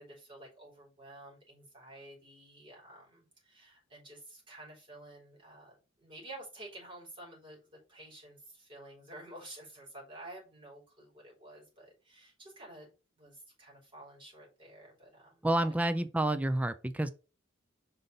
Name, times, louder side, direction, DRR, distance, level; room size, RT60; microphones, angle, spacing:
voice 1, 0.0-12.9 13.2-15.7, right 1 dB, 25° right, 3.8 m, -51 dB
voice 2, 15.4-17.1, right 1 dB, 5° right, 0.4 m, -29 dB
5.6 x 3.9 x 5.2 m
head